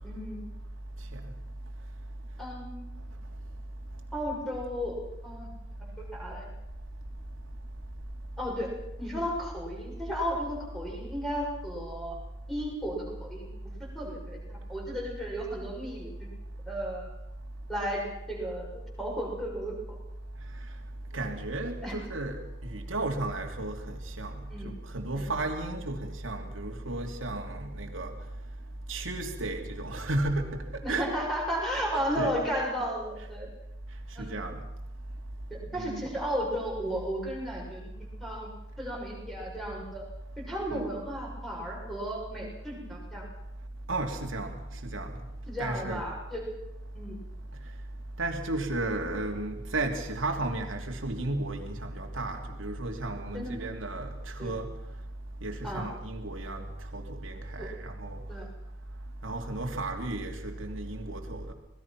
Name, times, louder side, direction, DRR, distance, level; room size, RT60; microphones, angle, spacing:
voice 1, 0.0-0.4 2.4-2.8 4.1-5.0 5.2-5.5 6.0-6.5 8.4-8.7 9.0-12.2 12.5-13.5 13.9-16.1 16.7-17.1 17.7-19.7 21.8-21.9 24.5-24.7 25.2-25.3 30.8-33.5 34.1-34.4 35.7-37.9 38.2-38.5 38.8-40.0 40.5-43.2 45.5-46.4 46.9-47.2 53.3-53.7 54.4-54.5 55.6-55.9 57.6-57.7 58.3-58.5, equal, ahead, 6.7 m, -34 dB
voice 2, 21.1-28.2 28.9-31.1 32.2-32.3 34.2-34.6 35.7-36.1 40.7-40.8 43.9-45.2 45.6-46.1 48.2-54.7 55.4-58.2 59.2-61.5, right 2 dB, 85° right, 2.9 m, -34 dB
26.5 x 19.5 x 6.0 m
head